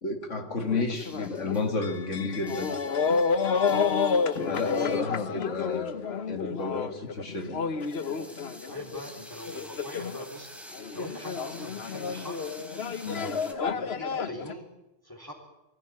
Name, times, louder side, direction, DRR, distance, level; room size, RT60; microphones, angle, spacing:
voice 1, 0.0-2.7 3.7-3.8 4.4-7.6 13.0-13.3, left 3 dB, 70° left, 6 dB, 2.3 m, -32 dB
sound 1, 0.6-9.0 9.5-10.4 10.7-14.5, left 5 dB, 55° left, 1.3 m, -30 dB
sound 2, 0.9-2.0 2.3-6.3 7.4-13.5, equal, ahead, 3.2 m, -49 dB
voice 2, 8.7-10.5 10.9-12.4 13.1-14.7 15.0-15.3, equal, 15° left, -2 dB, 3.6 m, -42 dB
23.5 x 15.0 x 9.8 m, 0.92 s
omnidirectional pair, 1.3 m